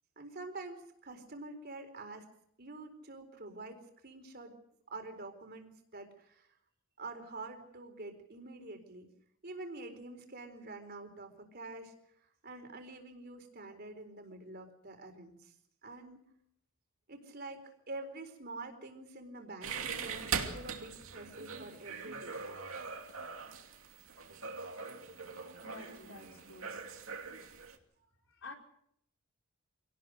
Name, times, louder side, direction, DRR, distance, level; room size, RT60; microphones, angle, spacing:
voice 1, 0.2-2.3 2.6-4.5 4.9-6.5 7.0-9.1 9.4-11.9 12.4-15.5 15.8-16.2 17.1-22.4, right 2 dB, 45° right, 6 dB, 4.2 m, -47 dB
sound 1, 19.6-27.8, right 5 dB, 65° right, 2.7 m, -41 dB
voice 2, 25.6-27.1 28.0-28.5, left 3 dB, 55° left, 2 dB, 4.6 m, -51 dB
26.5 x 18.5 x 6.5 m, 0.70 s
head